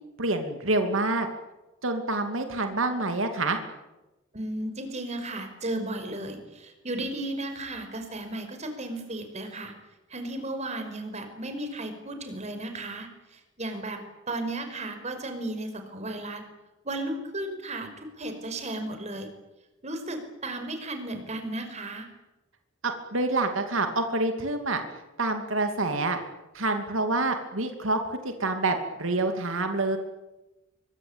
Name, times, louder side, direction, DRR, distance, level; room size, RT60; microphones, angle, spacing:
voice 1, 0.2-1.3 1.8-3.6 22.8-24.8 25.2-26.2 26.5-30.0, right 2 dB, 85° right, 6 dB, 2.6 m, -27 dB
voice 2, 4.3-9.7 10.1-14.0 14.3-16.4 16.8-19.3 19.8-22.1, right 1 dB, 35° right, 7 dB, 5.3 m, -34 dB
25.5 x 24.0 x 8.9 m, 1.0 s
head